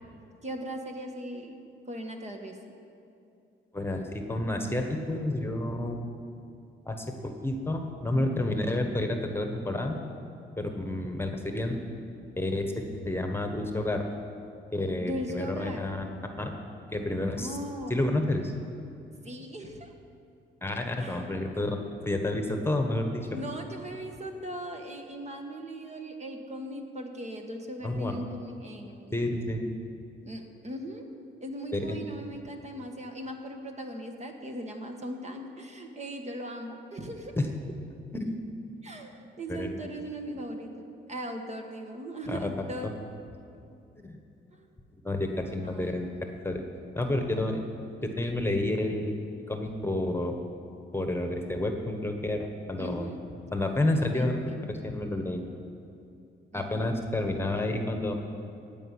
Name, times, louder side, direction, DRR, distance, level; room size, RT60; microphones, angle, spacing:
voice 1, 0.4-1.6 1.8-2.6 15.0-15.9 17.4-18.0 19.2-19.9 21.0-21.3 23.3-29.2 30.2-31.0 31.4-37.4 38.8-42.9 44.5-44.7 45.6-46.3 52.8-53.2 53.6-53.8 54.1-54.2 56.5-57.0, right 1 dB, 35° right, 3 dB, 1.5 m, -39 dB
voice 2, 3.7-6.0 6.8-10.0 10.6-11.8 12.4-14.0 14.7-16.5 16.9-17.5 17.9-18.5 20.6-21.8 22.0-23.3 27.8-28.1 29.1-29.7 31.7-32.0 37.4-37.5 38.1-38.3 39.5-39.8 42.3-42.5 44.0-44.2 45.0-46.1 46.4-46.6 46.9-47.6 48.0-49.2 49.5-50.3 50.9-53.1 53.5-54.4 54.7-55.4 56.5-58.1, left 1 dB, 10° left, 4 dB, 1.3 m, -30 dB
15.5 x 5.3 x 9.7 m, 2.6 s
cardioid pair, 90°, 20 cm